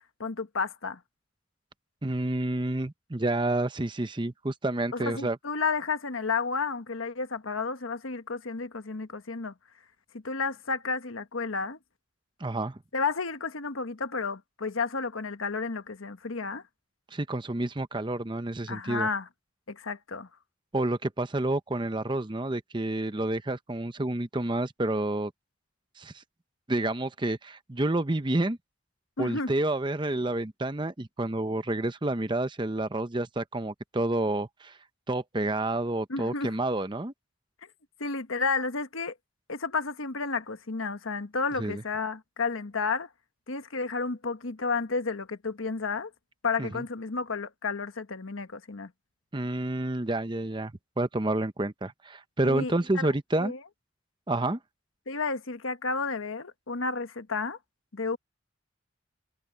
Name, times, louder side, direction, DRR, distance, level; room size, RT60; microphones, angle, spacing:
voice 1, 0.2-1.0 4.9-9.5 10.1-11.8 12.9-16.6 18.7-19.3 19.7-20.3 29.2-29.5 36.1-36.5 38.0-39.1 39.5-43.1 43.5-46.1 46.4-48.9 52.4-53.0 53.4-53.6 55.1-57.6 57.9-58.2, left 4 dB, 90° left, 1.3 m, -31 dB
voice 2, 2.0-5.4 12.4-12.8 17.1-19.1 20.7-25.3 26.0-26.2 26.7-28.6 29.2-34.8 35.1-37.1 41.6-41.8 46.6-46.8 49.3-50.7 51.0-53.5 54.3-54.6, right 2 dB, 25° right, 0.8 m, -29 dB
head